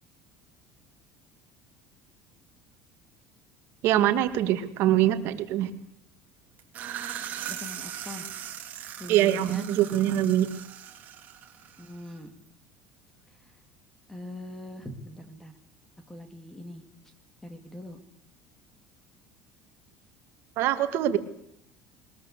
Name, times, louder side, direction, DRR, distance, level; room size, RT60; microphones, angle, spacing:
voice 1, 3.8-5.7 9.1-10.5 20.6-21.2, right 12 dB, 50° right, 9 dB, 2.1 m, -23 dB
sound 1, 6.6-12.2, right 10 dB, 30° right, 3.2 m, -39 dB
voice 2, 7.5-8.3 9.0-10.2 11.8-12.3 13.4-13.5 14.1-15.5 16.1-16.8 17.4-18.0, left 1 dB, 5° left, 9 dB, 2.2 m, -42 dB
22.0 x 21.0 x 8.3 m, 0.71 s
cardioid pair, 175°, 5 cm